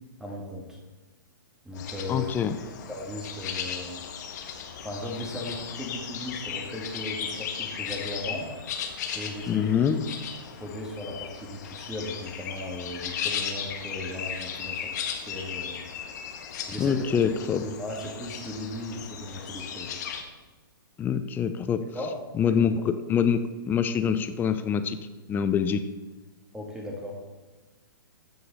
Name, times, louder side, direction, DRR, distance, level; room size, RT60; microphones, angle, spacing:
voice 1, 0.2-0.8 1.6-2.3 2.9-4.0 4.8-8.5 9.1-9.7 10.6-15.8 16.7-17.0 17.6-19.9 21.9-22.1 22.5-22.8 26.5-27.2, left 1 dB, 5° right, -1 dB, 2.1 m, -37 dB
sound 1, 1.7-20.2, left 7 dB, 50° left, 1.5 m, -36 dB
voice 2, 2.1-2.6 9.5-10.0 16.8-17.6 21.0-21.8 22.3-22.7 23.1-25.0 25.3-25.8, left 7 dB, 15° left, 10 dB, 0.6 m, -25 dB
14.5 x 6.7 x 4.2 m, 1.3 s
figure-of-eight pair, 120°, 12 cm